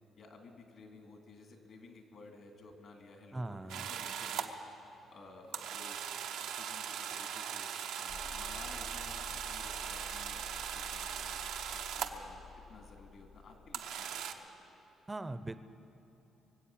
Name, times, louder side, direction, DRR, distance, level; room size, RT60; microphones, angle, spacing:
voice 1, 0.2-6.0 6.4-7.6 8.0-14.7, left 3 dB, 65° left, 3 dB, 2.5 m, -55 dB
voice 2, 3.3-3.9 15.1-15.6, right 2 dB, 20° right, 12 dB, 0.6 m, -40 dB
sound 1, 3.7-4.5 5.5-12.3 13.7-14.3, right 8 dB, 90° right, 0.8 m, -39 dB
sound 2, 8.1-14.2, left 5 dB, 25° left, 0.8 m, -52 dB
24.0 x 8.1 x 7.3 m, 3.0 s
cardioid pair, 90°, 0 cm